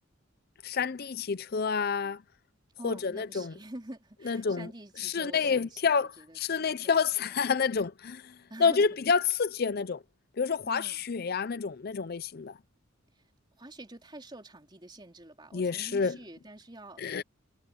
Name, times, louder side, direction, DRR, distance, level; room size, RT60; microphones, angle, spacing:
voice 1, 0.6-2.2 2.8-3.5 4.3-4.7 5.0-6.1 6.4-8.2 8.6-10.0 10.4-12.5 15.5-16.2 17.0-17.2, left 5 dB, 50° left, 0.5 m, -28 dB
voice 2, 2.8-7.5 8.5-9.0 10.6-11.0 13.1-13.2 13.6-17.2, right 1 dB, 20° right, 3.8 m, -47 dB
head